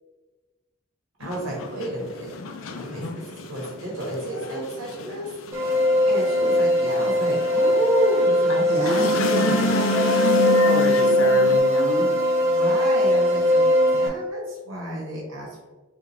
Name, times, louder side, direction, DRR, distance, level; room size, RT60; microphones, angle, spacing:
sound 1, 1.2-11.6, left 2 dB, 90° left, 0.5 m, -29 dB
voice 1, 1.2-2.3 2.8-5.3 6.0-9.1 9.3-9.7 12.4-15.7, right 1 dB, 85° right, -4 dB, 1.3 m, -31 dB
sound 2, 5.5-14.1, left 1 dB, 15° right, 0.9 m, -20 dB
voice 2, 8.5-12.1, left 1 dB, 65° left, 1 dB, 0.9 m, -28 dB
5.8 x 2.3 x 3.2 m, 1.2 s
head